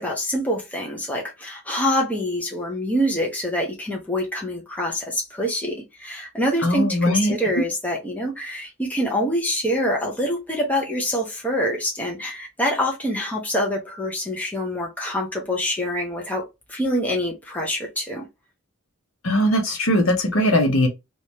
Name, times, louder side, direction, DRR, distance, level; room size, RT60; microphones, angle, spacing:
voice 1, 0.0-18.3, equal, 5° left, 0.9 m, -25 dB
voice 2, 6.6-7.3 19.2-20.9, left 1 dB, 70° left, 1.2 m, -20 dB
3.1 x 3.1 x 2.9 m
head